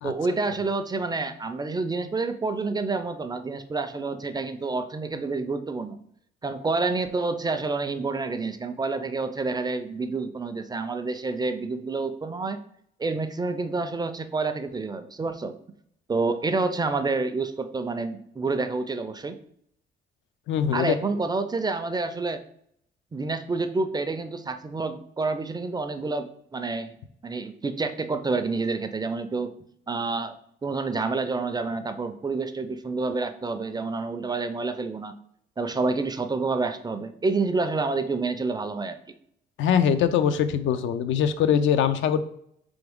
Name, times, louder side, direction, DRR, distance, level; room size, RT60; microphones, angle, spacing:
voice 1, 0.0-6.0 6.4-12.6 13.0-15.5 16.1-19.4 20.7-22.4 23.1-26.9 27.2-29.5 29.9-30.3 30.6-35.1 35.6-39.0, right 3 dB, 20° right, 9 dB, 0.4 m, -28 dB
voice 2, 20.5-21.0 39.6-42.2, left 8 dB, 75° left, 11 dB, 0.4 m, -22 dB
3.8 x 3.5 x 3.5 m, 0.69 s
cardioid pair, 90°, 20 cm